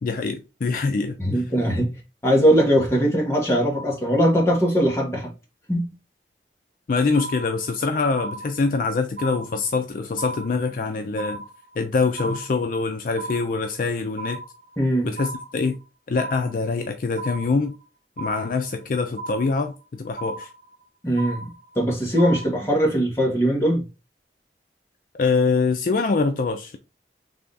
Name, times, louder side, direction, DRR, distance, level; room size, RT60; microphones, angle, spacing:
voice 1, 0.0-1.4 6.9-11.4 11.8-14.4 15.0-15.8 16.1-17.7 18.2-20.5 25.1-26.8, left 4 dB, 50° left, 0.4 m, -24 dB
voice 2, 1.2-2.0 2.2-5.3 5.7-5.9 14.8-15.1 21.0-23.9, equal, 15° left, 1.3 m, -20 dB
sound 1, 7.2-7.8 8.2-8.8 9.2-9.8 10.2-10.8 11.2-11.8 12.2-12.8 13.2-13.8 14.2-14.8 15.2-15.8 16.2-16.8 17.2-17.8 18.2-18.8 19.2-19.8 20.2-20.8 21.2-21.8 22.2-22.5, right 2 dB, 60° right, 0.9 m, -36 dB
3.5 x 3.4 x 3.8 m
head